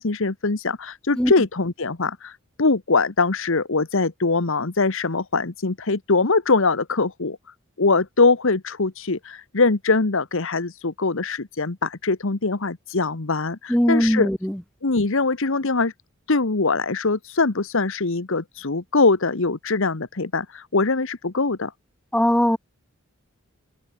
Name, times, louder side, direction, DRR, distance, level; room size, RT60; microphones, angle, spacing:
voice 1, 0.0-7.4 7.8-14.3 14.8-15.9 16.3-21.7, left 3 dB, 65° left, 1.2 m, -22 dB
voice 2, 13.7-14.6 22.1-22.6, equal, 5° left, 1.2 m, -20 dB
head